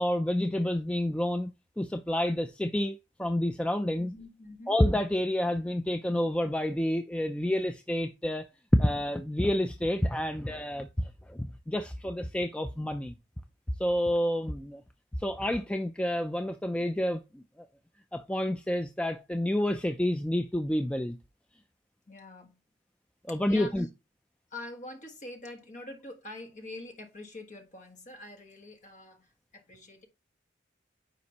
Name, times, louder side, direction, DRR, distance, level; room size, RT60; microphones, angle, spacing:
voice 1, 0.0-1.5 1.8-4.1 4.7-8.4 8.7-13.1 13.8-14.8 15.2-17.4 18.1-21.2 23.3-23.9, left 1 dB, 5° left, 0.3 m, -29 dB
voice 2, 4.0-4.8 22.1-22.6 23.3-23.9 24.5-30.1, left 2 dB, 40° left, 1.3 m, -45 dB
9.5 x 5.1 x 2.9 m
head